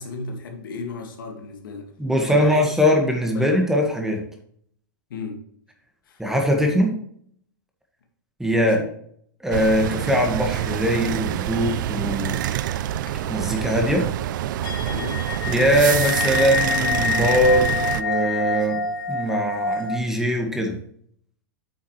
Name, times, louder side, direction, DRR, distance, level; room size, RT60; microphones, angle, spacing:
voice 1, 0.0-1.9 2.3-2.7 3.3-3.6 5.1-5.5 6.1-6.2 8.5-8.9 14.9-15.3, left 4 dB, 75° left, 3 dB, 2.1 m, -34 dB
voice 2, 2.0-4.2 6.2-7.0 8.4-8.8 9.4-12.8 13.3-14.1 15.5-18.8 19.1-20.8, equal, 5° right, 1 dB, 1.9 m, -21 dB
sound 1, 9.5-18.0, right 12 dB, 65° right, 0.5 m, -26 dB
sound 2, 11.6-12.1 12.4-12.5 12.8-20.0, left 4 dB, 90° left, 1.0 m, -27 dB
8.7 x 7.1 x 3.3 m, 0.64 s
hypercardioid pair, 110°, 11 cm